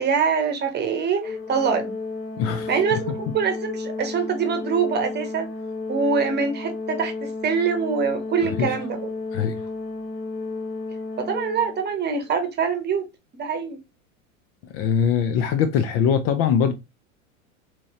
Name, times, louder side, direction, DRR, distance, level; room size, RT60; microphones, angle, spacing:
voice 1, 0.0-1.9 2.7-5.5 5.9-9.1 11.2-13.0 13.3-13.8, right 6 dB, 25° right, 1.0 m, -24 dB
Organ, 1.2-12.1, left 3 dB, 75° left, 1.6 m, -32 dB
voice 2, 2.4-3.0 8.6-8.8 9.3-9.6 14.7-16.7, left 7 dB, 35° left, 0.5 m, -22 dB
4.4 x 2.9 x 2.8 m
hypercardioid pair, 105°, 42 cm